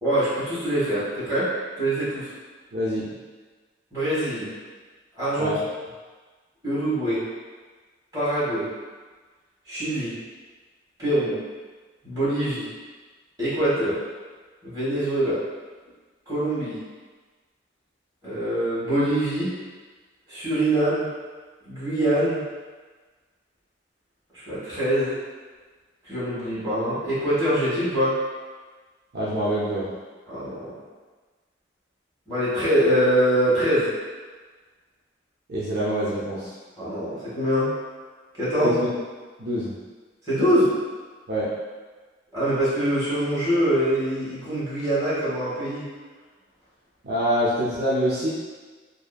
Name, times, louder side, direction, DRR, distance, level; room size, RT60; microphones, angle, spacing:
voice 1, 0.0-1.5 1.8-2.3 3.9-4.5 5.2-5.5 6.6-7.2 8.1-8.7 9.7-10.1 11.0-11.3 12.0-12.7 13.4-14.0 14.6-15.4 16.3-16.8 18.2-19.5 20.3-21.1 21.6-22.4 24.3-25.2 26.0-28.1 30.3-30.7 32.3-33.9 36.8-37.7 38.4-38.8 40.3-40.7 42.3-45.9, right 1 dB, 20° right, -11 dB, 1.2 m, -24 dB
voice 2, 2.7-3.1 5.4-5.6 29.1-29.9 35.5-36.5 38.6-38.9 39.4-39.7 41.3-41.5 47.0-48.3, equal, 60° right, -8 dB, 0.5 m, -25 dB
2.7 x 2.4 x 2.2 m, 1.4 s
head